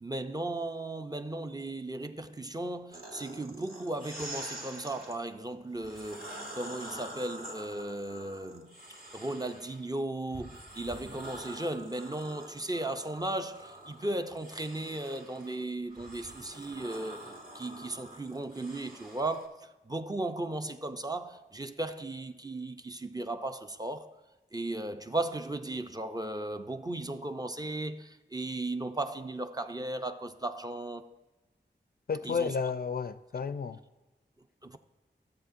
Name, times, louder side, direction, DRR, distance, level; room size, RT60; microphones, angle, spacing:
voice 1, 0.0-8.8 9.1-17.3 17.5-24.1 24.5-31.1 32.2-32.5 34.6-34.8, right 2 dB, 20° right, 0.5 m, -36 dB
sound 1, 2.9-5.2 5.8-9.8 10.3-19.5, right 1 dB, 55° right, 2.4 m, -46 dB
voice 2, 32.1-33.8, left 5 dB, 55° left, 0.4 m, -32 dB
14.0 x 7.4 x 2.5 m
cardioid pair, 45°, 18 cm